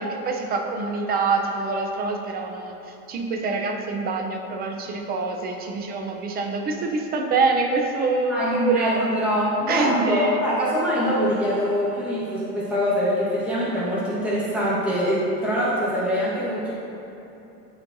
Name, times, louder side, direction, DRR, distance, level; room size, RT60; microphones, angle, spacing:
voice 1, 0.0-9.0 9.7-10.4, right 4 dB, 25° right, 3 dB, 0.5 m, -25 dB
voice 2, 8.3-16.7, equal, 5° right, -9 dB, 1.2 m, -24 dB
12.5 x 4.3 x 2.6 m, 2.9 s
cardioid pair, 155°, 40 cm